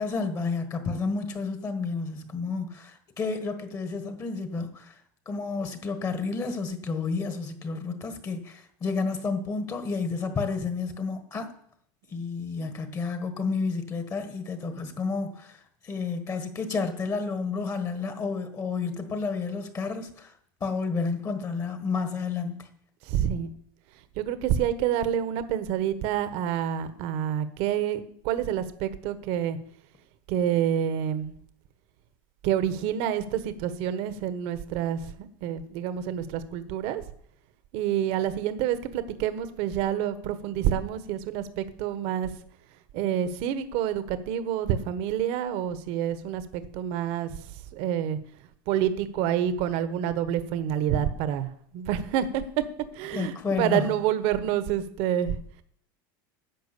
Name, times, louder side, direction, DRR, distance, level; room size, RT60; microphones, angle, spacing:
voice 1, 0.0-5.0 5.2-11.5 12.1-20.3 20.6-22.7 53.1-53.9, left 4 dB, 30° left, 1.5 m, -31 dB
voice 2, 23.1-23.5 24.2-29.6 30.3-31.3 32.4-37.0 37.7-42.3 42.9-47.3 47.7-48.2 48.7-52.4 52.9-55.4, right 10 dB, 60° right, 1.2 m, -28 dB
10.5 x 6.1 x 8.3 m
supercardioid pair, 125°, 12 cm